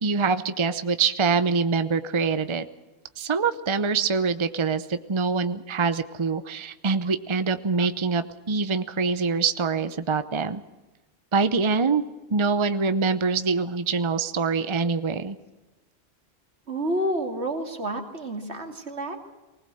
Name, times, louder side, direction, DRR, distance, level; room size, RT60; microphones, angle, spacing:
voice 1, 0.0-2.7 3.2-10.6 11.3-12.0 12.3-15.4, right 4 dB, 30° right, 11 dB, 0.8 m, -24 dB
voice 2, 16.7-19.2, right 1 dB, 80° right, 5 dB, 3.0 m, -29 dB
20.0 x 20.0 x 7.8 m, 1.1 s
omnidirectional pair, 1.1 m